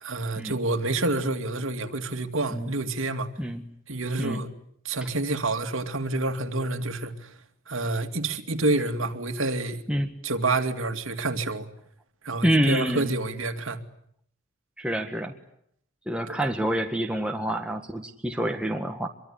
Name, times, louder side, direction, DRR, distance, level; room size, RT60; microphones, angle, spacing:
voice 1, 0.0-3.3 3.9-4.5 4.8-7.3 7.7-9.8 10.2-11.7 12.2-13.8 16.3-16.4, right 2 dB, 60° right, 2.6 m, -28 dB
voice 2, 12.4-13.1 14.8-15.3 16.1-19.1, right 1 dB, 5° right, 1.6 m, -27 dB
25.0 x 23.5 x 9.9 m
head